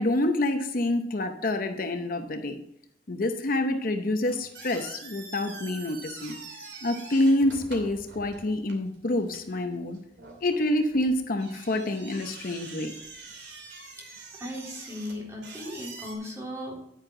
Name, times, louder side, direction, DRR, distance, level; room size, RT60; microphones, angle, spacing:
voice 1, 0.0-2.6 3.1-6.4 6.8-10.0 10.4-12.9, left 1 dB, 55° left, 7 dB, 0.8 m, -27 dB
sound 1, 4.2-16.1, right 4 dB, 80° right, 2.7 m, -45 dB
voice 2, 14.0-16.7, left 1 dB, 15° right, -3 dB, 3.3 m, -37 dB
9.7 x 9.5 x 3.8 m, 0.75 s
head